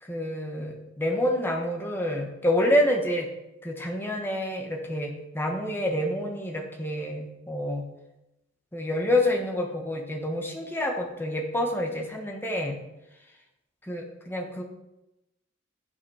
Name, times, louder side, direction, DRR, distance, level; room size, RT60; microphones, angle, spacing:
voice 1, 0.0-3.3 3.6-7.8 8.7-12.8 13.9-14.6, left 1 dB, 10° left, 2 dB, 1.3 m, -28 dB
10.0 x 5.8 x 5.0 m, 0.93 s
head